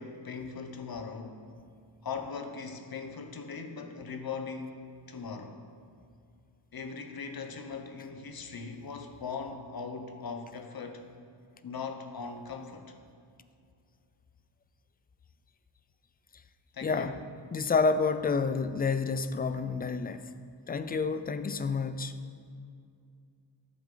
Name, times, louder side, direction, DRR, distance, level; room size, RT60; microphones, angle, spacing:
voice 1, 0.0-1.5 2.0-5.6 6.7-11.1 11.6-13.0 16.7-17.2, left 5 dB, 50° left, 6 dB, 0.9 m, -40 dB
voice 2, 16.8-17.2 17.5-20.3 20.7-22.1, left 4 dB, 20° left, 11 dB, 0.3 m, -29 dB
12.0 x 7.2 x 3.8 m, 2.4 s
wide cardioid pair, 90°, 46 cm